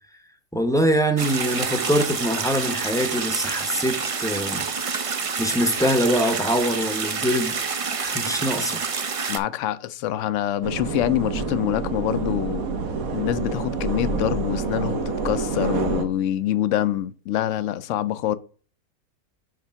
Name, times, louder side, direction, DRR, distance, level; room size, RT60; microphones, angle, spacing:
voice 1, 0.5-4.7 5.4-7.5 8.0-8.8, equal, 5° left, 0.6 m, -23 dB
sound 1, 1.2-9.4, right 5 dB, 50° right, 0.4 m, -28 dB
voice 2, 9.3-12.7 13.1-18.4, left 12 dB, 70° left, 0.8 m, -25 dB
sound 2, 10.6-16.0, right 4 dB, 80° right, 1.3 m, -27 dB
7.2 x 3.3 x 5.7 m
omnidirectional pair, 1.5 m